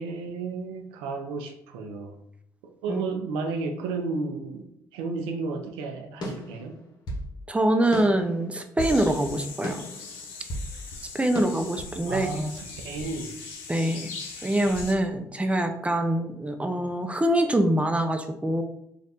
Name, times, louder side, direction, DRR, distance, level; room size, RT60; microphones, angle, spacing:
voice 1, 0.0-2.2 2.8-4.7 4.9-6.7 12.1-13.4, right 3 dB, 85° right, 5 dB, 0.5 m, -32 dB
sound 1, 6.2-7.3 7.9-9.0 9.6-10.7 11.4-11.5, equal, 55° left, 1.1 m, -34 dB
voice 2, 7.5-9.8 11.1-12.4 13.7-14.1 14.4-18.6, right 1 dB, 15° right, 6 dB, 0.6 m, -24 dB
sound 2, 8.8-14.9, left 4 dB, 80° left, 0.7 m, -40 dB
3.4 x 2.5 x 4.1 m, 0.75 s
supercardioid pair, 55°, 9 cm